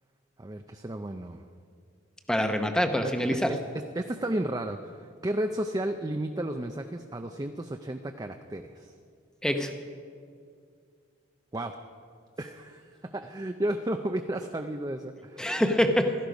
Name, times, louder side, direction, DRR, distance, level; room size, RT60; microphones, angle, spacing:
voice 1, 0.4-1.5 3.0-3.6 4.0-8.9 11.5-11.7 12.4-15.6, right 1 dB, 20° right, 5 dB, 0.5 m, -33 dB
voice 2, 2.3-3.5 9.4-9.7 15.4-16.1, equal, 5° left, 6 dB, 0.8 m, -25 dB
16.0 x 13.5 x 5.2 m, 2.3 s
head